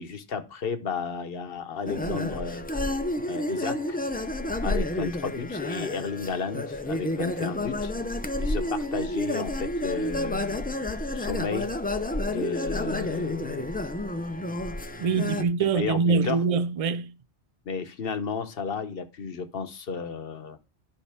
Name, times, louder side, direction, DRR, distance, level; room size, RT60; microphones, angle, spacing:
voice 1, 0.0-2.6 3.3-4.0 4.6-7.9 8.4-11.7 12.2-13.9 15.4-16.4 17.7-20.6, left 5 dB, 55° left, 1.1 m, -33 dB
sound 1, 1.9-15.4, left 1 dB, 15° left, 0.3 m, -30 dB
voice 2, 15.0-17.1, right 5 dB, 45° right, 0.4 m, -24 dB
12.0 x 5.4 x 3.5 m
omnidirectional pair, 1.2 m